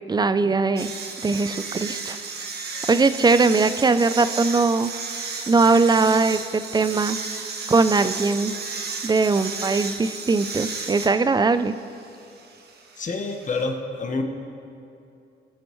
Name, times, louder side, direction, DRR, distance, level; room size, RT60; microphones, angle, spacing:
voice 1, 0.1-0.9 1.2-2.2 2.9-4.9 5.5-7.2 7.7-8.5 9.0-11.7, right 3 dB, 20° right, 12 dB, 0.4 m, -20 dB
sound 1, 0.8-13.6, right 4 dB, 55° right, 1.3 m, -34 dB
voice 2, 13.0-14.2, left 3 dB, 40° left, 4 dB, 1.3 m, -28 dB
20.5 x 8.1 x 3.1 m, 2.6 s
cardioid pair, 90°, 20 cm